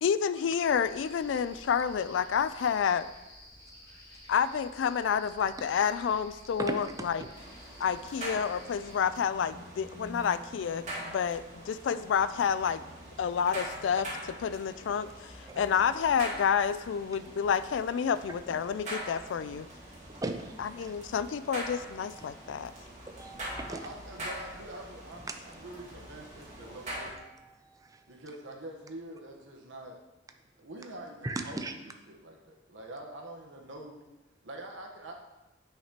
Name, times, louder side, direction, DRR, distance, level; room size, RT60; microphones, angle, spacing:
voice 1, 0.0-3.1 4.3-7.2 7.8-12.8 13.2-14.1 14.4-19.7 20.6-22.7, left 7 dB, 70° left, 15 dB, 0.3 m, -29 dB
sound 1, 0.6-9.0, left 1 dB, 20° left, 2.2 m, -52 dB
voice 2, 6.6-7.3 15.5-15.6 18.5-18.6 20.2-20.9 22.0-22.2 23.1-23.9 25.3-25.4 27.1-28.1 31.2-31.7, right 2 dB, 20° right, 5 dB, 0.5 m, -38 dB
sound 2, 7.3-27.1, right 1 dB, 40° right, 2.1 m, -43 dB
voice 3, 23.7-27.4 28.1-30.0 30.6-31.6 31.8-34.0 34.4-35.1, right 1 dB, 80° right, 1 dB, 1.1 m, -45 dB
9.8 x 5.7 x 2.9 m, 1.1 s
head